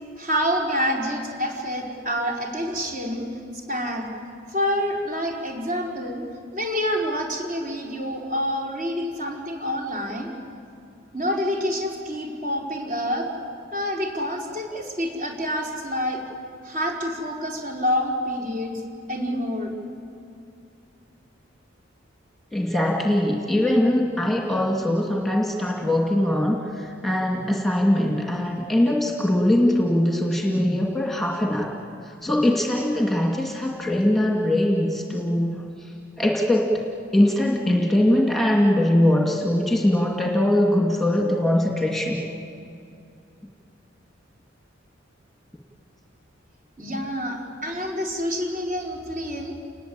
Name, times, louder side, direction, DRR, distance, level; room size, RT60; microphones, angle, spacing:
voice 1, 0.2-3.3 3.5-4.1 4.5-6.2 6.5-10.3 11.1-13.3 13.7-16.2 16.6-18.8 19.1-19.8 46.8-49.5, equal, 40° right, 0 dB, 4.9 m, -27 dB
voice 2, 22.5-31.7 32.0-35.9 36.2-36.8 37.1-42.2, left 1 dB, ahead, 0 dB, 2.2 m, -21 dB
29.5 x 20.5 x 8.8 m, 2.5 s
head